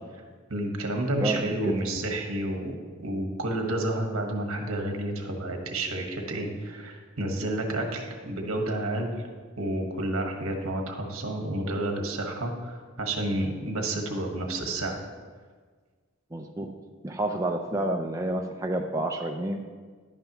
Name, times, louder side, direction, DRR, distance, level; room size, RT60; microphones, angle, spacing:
voice 1, 0.5-9.2 9.6-15.0, right 1 dB, 75° right, 2 dB, 1.4 m, -30 dB
voice 2, 16.3-16.7 17.0-19.7, right 1 dB, 15° right, 2 dB, 0.4 m, -29 dB
11.0 x 8.9 x 3.0 m, 1.5 s
head